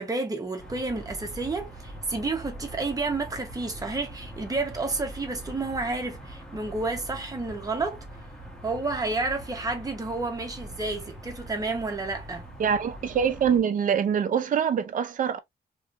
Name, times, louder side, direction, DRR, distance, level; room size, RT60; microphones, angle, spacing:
voice 1, 0.0-8.0 8.6-12.5, right 3 dB, 20° right, 0.9 m, -30 dB
sound 1, 0.6-13.6, right 1 dB, 5° left, 1.1 m, -43 dB
voice 2, 12.6-15.4, right 7 dB, 50° right, 0.5 m, -24 dB
3.0 x 3.0 x 2.5 m
wide cardioid pair, 165°, 17 cm